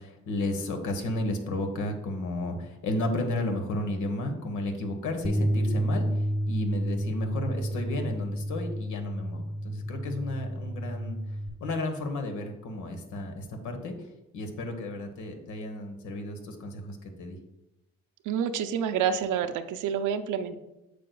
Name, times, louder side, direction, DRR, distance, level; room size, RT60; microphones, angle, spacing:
voice 1, 0.0-6.1 6.5-11.2 11.6-13.9 14.3-17.4, left 1 dB, 80° left, 5 dB, 1.3 m, -33 dB
Bass guitar, 5.2-11.5, equal, 10° left, 0.9 m, -30 dB
voice 2, 18.3-20.6, right 8 dB, 85° right, 9 dB, 0.7 m, -28 dB
8.4 x 6.7 x 2.3 m, 0.95 s
cardioid pair, 90°, 30 cm